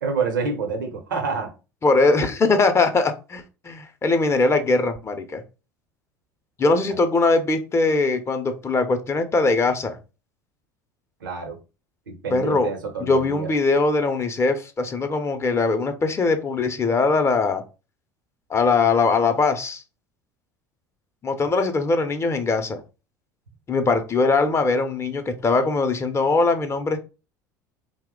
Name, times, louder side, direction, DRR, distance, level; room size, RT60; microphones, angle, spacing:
voice 1, 0.0-1.5 11.2-11.6 12.1-13.5, right 5 dB, 85° right, 0.7 m, -27 dB
voice 2, 1.8-5.4 6.6-10.0 12.3-12.7 13.0-17.6 18.5-19.8 21.2-22.8 23.7-27.0, left 3 dB, 25° left, 0.5 m, -21 dB
2.8 x 2.1 x 3.6 m
hypercardioid pair, 75°, 10 cm